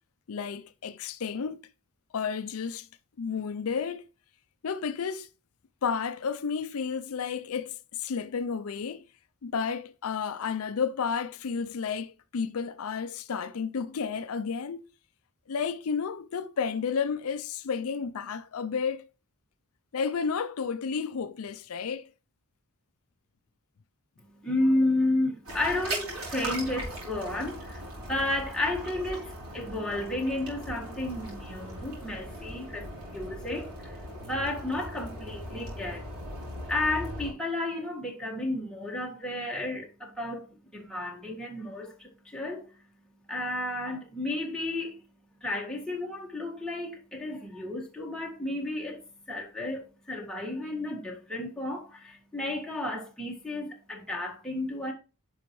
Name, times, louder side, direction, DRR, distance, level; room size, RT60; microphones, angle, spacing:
voice 1, 0.3-1.6 2.1-2.9 3.2-4.1 4.6-5.3 5.8-9.0 9.4-14.8 15.5-19.1 19.9-22.1, left 6 dB, 70° left, 0.5 m, -32 dB
voice 2, 24.2-36.1 36.7-42.8 43.3-45.0 45.4-54.9, left 2 dB, 5° left, 1.8 m, -32 dB
sound 1, 25.4-37.3, right 1 dB, 75° right, 4.0 m, -39 dB
10.0 x 5.6 x 3.1 m
head